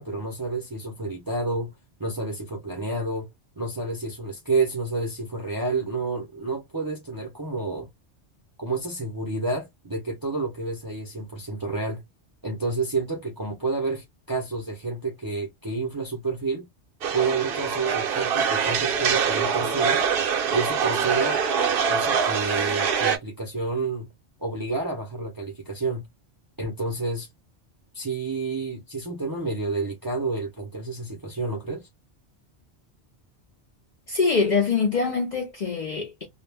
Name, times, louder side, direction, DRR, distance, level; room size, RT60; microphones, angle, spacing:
voice 1, 0.0-1.7 2.0-3.3 3.6-7.9 8.6-12.0 12.4-16.7 17.1-20.0 20.5-21.4 21.9-24.1 24.4-26.1 26.6-27.3 27.9-31.9, right 3 dB, 25° right, 0.5 m, -29 dB
sound 1, 17.0-23.2, right 6 dB, 60° right, 0.7 m, -24 dB
voice 2, 34.1-36.3, left 5 dB, 55° left, 0.5 m, -24 dB
2.3 x 2.1 x 3.2 m
omnidirectional pair, 1.2 m